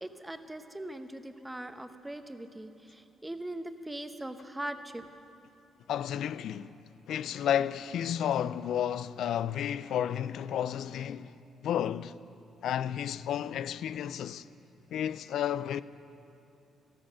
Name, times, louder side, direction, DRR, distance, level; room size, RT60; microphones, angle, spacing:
voice 1, 0.0-5.1, right 1 dB, 10° right, 0.9 m, -40 dB
voice 2, 5.9-6.7 7.1-11.3 11.6-12.1 12.6-14.4 14.9-15.8, left 10 dB, 75° left, 0.4 m, -32 dB
13.5 x 13.5 x 6.3 m
cardioid pair, 90°, 0 cm